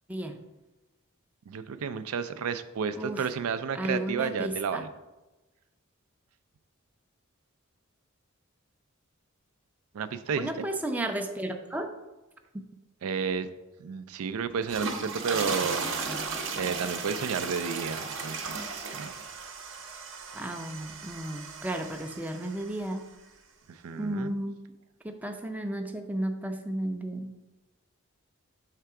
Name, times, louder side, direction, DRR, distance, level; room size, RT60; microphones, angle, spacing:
voice 1, 1.5-4.9 9.9-10.7 13.0-13.5 13.8-15.9 16.6-19.3 23.7-24.4, right 6 dB, 90° right, 11 dB, 0.4 m, -32 dB
voice 2, 3.8-4.8 10.4-11.9 20.3-23.1 24.0-24.5 25.0-27.3, right 1 dB, 5° right, 5 dB, 0.4 m, -33 dB
sound 1, 14.5-22.8, right 4 dB, 60° right, 0.8 m, -36 dB
6.6 x 3.4 x 4.7 m, 1.1 s
head